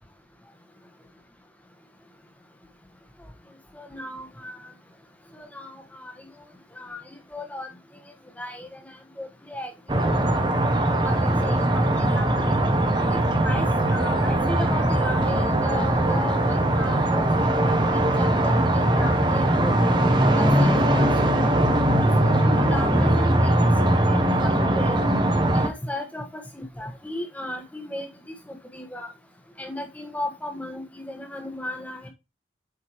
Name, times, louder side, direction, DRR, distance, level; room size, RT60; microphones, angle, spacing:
voice 1, 3.7-4.7 5.3-6.3 6.8-7.7 8.4-9.7 10.3-10.5 11.0-12.6 13.1-13.2 13.4-19.7 20.4-21.3 22.2-23.6 24.0-25.0 25.5-28.1 28.5-29.1 29.6-32.1, left 1 dB, 10° left, 1.3 m, -36 dB
sound 1, 9.9-25.7, right 1 dB, 25° right, 0.8 m, -21 dB
7.8 x 4.8 x 3.0 m
head